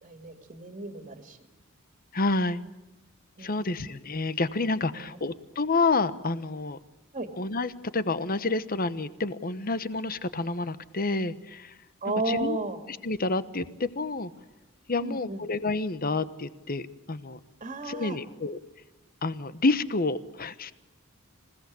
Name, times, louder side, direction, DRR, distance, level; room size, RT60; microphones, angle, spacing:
voice 1, 0.0-1.4 3.4-3.7 4.9-5.2 7.1-7.3 12.0-12.8 15.0-15.4 17.6-18.2, right 2 dB, 35° right, 6 dB, 2.3 m, -33 dB
voice 2, 2.1-2.6 3.4-6.8 7.4-11.7 12.3-12.6 13.0-14.3 14.9-17.4 17.9-18.6 19.2-20.7, left 3 dB, 45° left, 14 dB, 1.1 m, -29 dB
27.5 x 17.5 x 8.4 m, 1.1 s
head